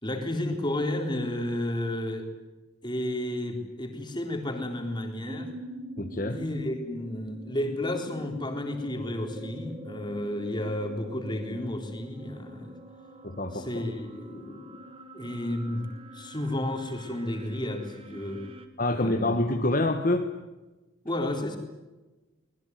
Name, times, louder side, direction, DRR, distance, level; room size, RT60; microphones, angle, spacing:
voice 1, 0.0-2.3 2.8-5.5 6.3-12.8 13.5-14.7 15.1-15.9 16.1-18.4 18.9-19.3 21.0-21.6, left 1 dB, 20° left, 4 dB, 4.0 m, -32 dB
sound 1, 5.3-18.7, right 1 dB, 25° right, 2.1 m, -45 dB
voice 2, 6.0-6.4 13.2-13.6 18.8-20.3, left 1 dB, 40° left, 4 dB, 1.7 m, -26 dB
25.0 x 21.0 x 9.6 m, 1.1 s
head